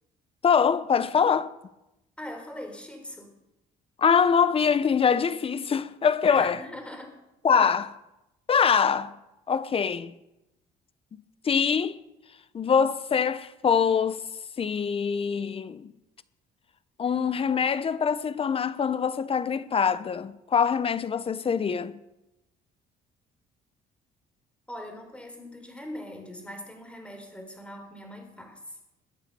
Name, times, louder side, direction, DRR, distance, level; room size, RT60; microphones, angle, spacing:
voice 1, 0.4-1.5 4.0-6.6 7.4-7.9 8.5-9.1 9.5-10.1 11.4-12.0 12.5-14.2 14.6-15.9 17.0-22.0, left 6 dB, 35° left, 1.0 m, -24 dB
voice 2, 2.2-3.3 6.2-7.2 24.7-28.8, left 1 dB, 5° left, 4.1 m, -41 dB
22.0 x 8.5 x 6.9 m
cardioid pair, 110°, 17 cm